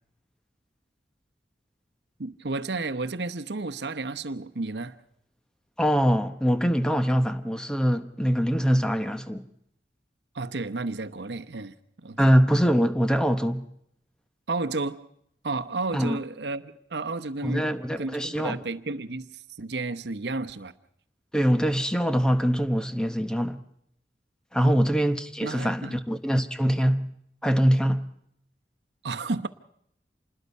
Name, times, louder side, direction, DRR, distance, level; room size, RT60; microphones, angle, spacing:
voice 1, 2.2-5.0 10.3-12.3 14.5-15.0 15.4-17.7 18.0-20.7 24.6-24.9 25.4-26.0 29.0-29.5, right 3 dB, 70° right, 0.9 m, -32 dB
voice 2, 5.8-9.5 12.2-13.7 15.9-16.2 17.4-18.6 21.3-23.6 24.5-27.1 27.4-28.1, equal, 5° left, 0.9 m, -23 dB
27.0 x 20.5 x 5.5 m
head